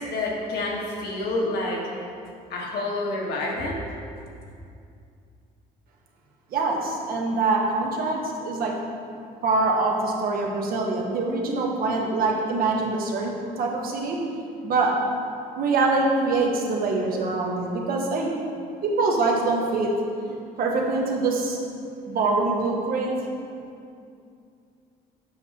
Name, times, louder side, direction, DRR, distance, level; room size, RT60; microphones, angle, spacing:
voice 1, 0.0-1.9 2.5-3.8, left 2 dB, 70° left, -2 dB, 1.4 m, -28 dB
voice 2, 6.5-8.7 9.4-14.2 14.6-14.9 15.6-18.3 18.8-19.9 20.3-21.6 22.1-23.1, right 3 dB, 60° right, -1 dB, 1.2 m, -24 dB
7.7 x 6.1 x 2.9 m, 2.4 s
cardioid pair, 110°, 17 cm